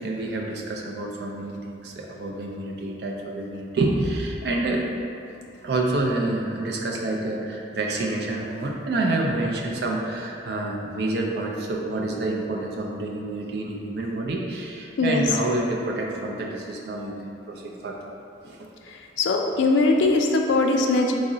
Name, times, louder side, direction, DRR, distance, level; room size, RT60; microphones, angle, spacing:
voice 1, 0.0-4.8 5.6-18.0 18.4-18.7, right 2 dB, 60° right, -1 dB, 0.4 m, -28 dB
voice 2, 18.9-21.1, left 3 dB, 75° left, 2 dB, 0.3 m, -21 dB
3.5 x 2.0 x 3.8 m, 2.7 s
head